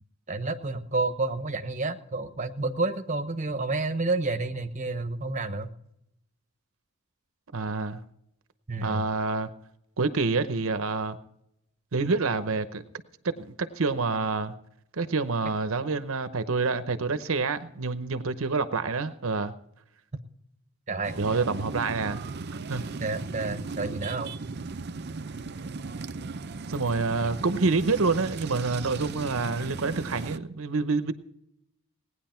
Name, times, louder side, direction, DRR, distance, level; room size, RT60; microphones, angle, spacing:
voice 1, 0.3-5.7 8.7-9.1 20.9-21.2 23.0-24.3, right 3 dB, 35° right, 7 dB, 0.9 m, -30 dB
voice 2, 7.5-8.0 8.8-9.5 10.0-11.2 11.9-12.8 13.4-14.5 14.9-19.5 21.2-22.2 22.7-22.8 26.7-31.1, right 4 dB, 70° right, 11 dB, 0.8 m, -27 dB
sound 1, 21.0-30.4, right 4 dB, 50° right, 0.5 m, -37 dB
18.5 x 10.0 x 4.4 m, 0.77 s
head